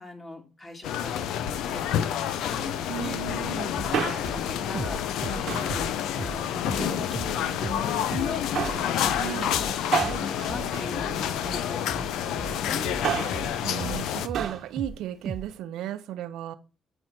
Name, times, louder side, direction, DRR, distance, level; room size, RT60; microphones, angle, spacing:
voice 1, 0.0-3.2 4.1-5.9 6.2-12.9, left 2 dB, 30° left, 2.4 m, -41 dB
sound 1, 0.8-14.3, left 10 dB, 85° left, 0.5 m, -29 dB
voice 2, 2.9-3.8 9.1-9.6 13.6-16.6, right 12 dB, 90° right, 0.6 m, -35 dB
sound 2, 3.4-3.5 3.8-4.0 4.3-6.4 6.7-6.9 7.1-7.4 7.6-7.9 8.1-8.3 8.6-14.0 14.3-15.0 15.2-15.5, right 4 dB, 35° right, 0.4 m, -37 dB
Male speech man speaking, 3.7-4.5 5.5-5.8 6.7-7.5 8.5-8.9 9.9-11.6 12.8-13.5 14.3-14.7 15.0-15.1, right 8 dB, 65° right, 1.1 m, -31 dB
7.7 x 4.6 x 5.7 m
cardioid pair, 90°, 0 cm